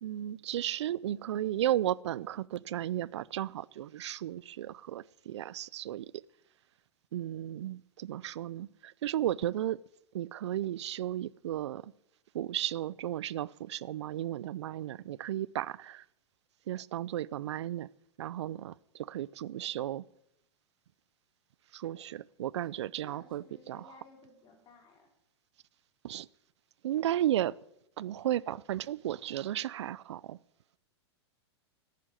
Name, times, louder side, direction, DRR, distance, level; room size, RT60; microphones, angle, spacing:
voice 1, 0.0-6.1 7.1-9.8 10.1-11.9 12.3-16.0 16.7-17.9 18.2-20.0 21.7-23.9 26.0-26.3 26.8-27.5 28.0-30.4, right 12 dB, 80° right, 0.4 m, -34 dB
voice 2, 22.6-25.1, left 4 dB, 30° left, 3.8 m, -57 dB
11.0 x 10.5 x 9.0 m
hypercardioid pair, 120°, 14 cm